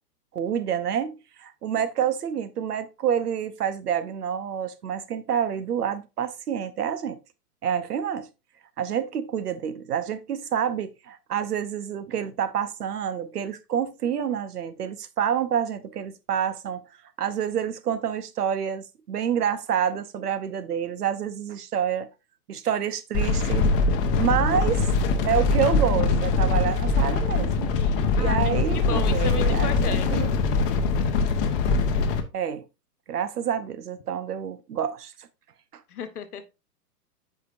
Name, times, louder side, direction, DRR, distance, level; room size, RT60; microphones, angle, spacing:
voice 1, 0.3-7.2 7.6-8.3 8.8-16.8 17.2-22.1 22.5-23.7 24.2-24.9 25.3-27.7 28.2-30.3 32.3-32.6 33.1-35.3 35.7-35.8, right 8 dB, 70° right, 1.0 m, -28 dB
sound 1, 23.1-32.2, left 3 dB, 35° left, 1.0 m, -22 dB
voice 2, 27.8-30.2 35.9-36.5, left 7 dB, 65° left, 1.2 m, -35 dB
8.0 x 5.1 x 2.6 m
figure-of-eight pair, 115°, 48 cm